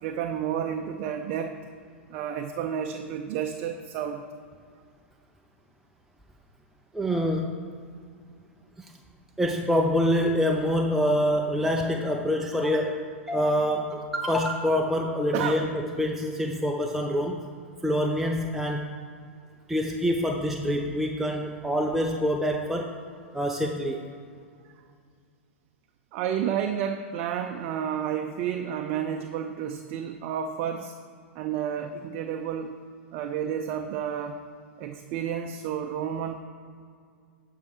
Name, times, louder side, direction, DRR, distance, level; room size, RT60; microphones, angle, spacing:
voice 1, 0.0-1.6 2.1-4.2 15.3-15.6 26.1-30.9 31.3-32.7 33.1-34.4 34.8-36.3, right 8 dB, 45° right, 5 dB, 0.6 m, -31 dB
voice 2, 6.9-7.6 8.8-8.9 9.4-17.5 17.8-18.9 19.7-22.9 23.3-24.0, equal, 5° right, 1 dB, 0.7 m, -26 dB
11.5 x 5.6 x 4.9 m, 2.2 s
figure-of-eight pair, 100°, 7 cm